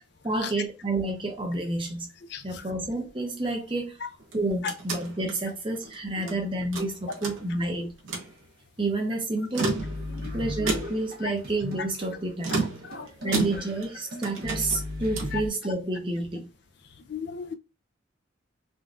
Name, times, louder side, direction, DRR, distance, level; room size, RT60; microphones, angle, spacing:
voice 1, 0.2-2.1 2.4-4.0 4.3-7.9 8.8-9.8 10.3-12.6 13.2-16.5, right 2 dB, 25° right, 0.7 m, -29 dB
voice 2, 2.3-2.6 4.0-4.1 4.6-4.7 6.2-6.3 10.1-10.4 11.2-11.3 12.8-13.4 15.3-15.4 17.1-17.6, left 7 dB, 55° left, 0.4 m, -35 dB
sound 1, 4.2-6.4 6.7-7.7 8.0-8.3 9.4-10.2 10.7-11.2 12.4-13.9 14.2-15.4, right 3 dB, 70° right, 1.0 m, -32 dB
sound 2, 9.8-15.5, equal, 50° right, 1.2 m, -37 dB
3.7 x 2.3 x 2.5 m
head